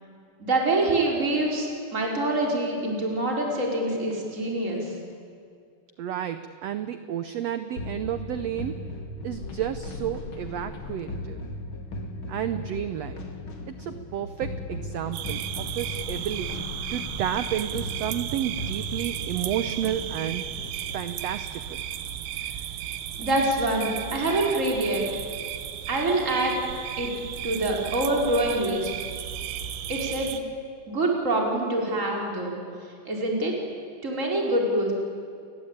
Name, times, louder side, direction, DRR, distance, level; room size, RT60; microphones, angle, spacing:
voice 1, 0.4-4.9 23.2-25.0 25.9-26.5 27.0-27.1 27.4-28.9 29.9-30.4 30.9-32.6 33.0-33.6 34.0-35.1, right 1 dB, 20° right, -1 dB, 4.9 m, -25 dB
voice 2, 6.0-8.8 9.2-11.4 12.3-13.2 13.7-20.4 20.9-21.8, right 10 dB, 75° right, 10 dB, 1.5 m, -31 dB
sound 1, 7.8-21.1, left 2 dB, 40° left, 2.6 m, -37 dB
sound 2, 15.1-30.4, right 10 dB, 90° right, 3.0 m, -34 dB
29.5 x 21.5 x 9.0 m, 2.3 s
omnidirectional pair, 4.1 m